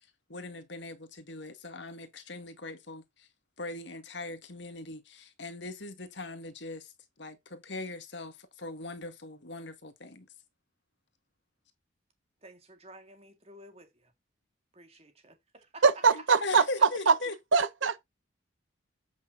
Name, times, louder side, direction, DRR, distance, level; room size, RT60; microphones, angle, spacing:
voice 1, 0.3-3.3 3.6-6.9 7.2-10.3 16.1-17.7, left 2 dB, 60° left, 1.9 m, -40 dB
voice 2, 12.4-14.1 14.7-15.8, right 1 dB, 30° right, 2.2 m, -53 dB
voice 3, 15.8-17.2 17.5-18.0, right 5 dB, 70° right, 0.9 m, -23 dB
8.3 x 6.4 x 3.9 m
head